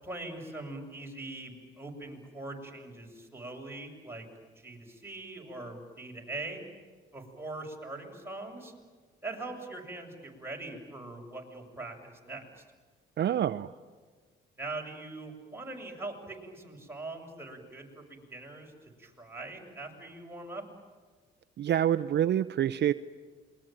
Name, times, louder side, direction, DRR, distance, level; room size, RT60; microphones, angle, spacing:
voice 1, 0.0-4.3 4.6-6.6 7.1-8.7 9.2-12.6 14.6-18.7 19.0-20.6, right 2 dB, 10° right, 0 dB, 7.1 m, -42 dB
voice 2, 13.2-13.7 21.6-22.9, right 10 dB, 60° right, 12 dB, 0.7 m, -26 dB
28.0 x 22.5 x 9.1 m, 1.5 s
cardioid pair, 90°, 20 cm